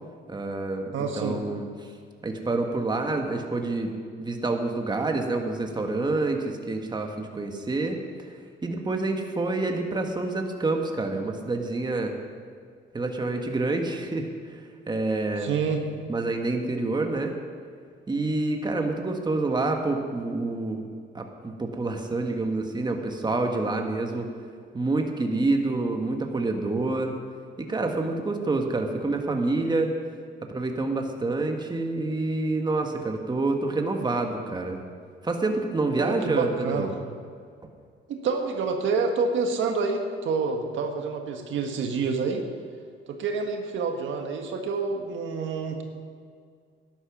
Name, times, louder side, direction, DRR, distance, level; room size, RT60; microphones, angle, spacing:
voice 1, 0.3-1.9 2.2-3.9 4.2-8.3 8.6-12.1 12.9-14.3 14.9-15.5 16.1-17.3 18.1-20.9 21.1-24.3 24.7-27.1 27.6-29.9 30.5-34.8 35.2-36.9, right 2 dB, 20° right, 3 dB, 1.6 m, -27 dB
voice 2, 0.9-1.4 15.4-15.8 35.9-36.9 38.1-42.4 43.1-45.8, right 4 dB, 75° right, 4 dB, 1.5 m, -28 dB
12.5 x 11.0 x 6.1 m, 2.1 s
cardioid pair, 90°, 20 cm